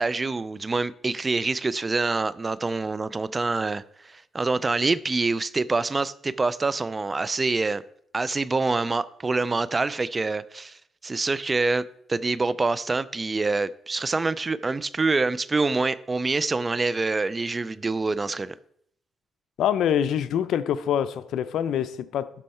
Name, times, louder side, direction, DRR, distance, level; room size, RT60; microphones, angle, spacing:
voice 1, 0.0-7.8 8.1-18.5, right 3 dB, 25° right, 0.4 m, -26 dB
voice 2, 19.6-22.3, left 9 dB, 75° left, 0.5 m, -25 dB
12.0 x 4.4 x 4.3 m
cardioid pair, 90°, 0 cm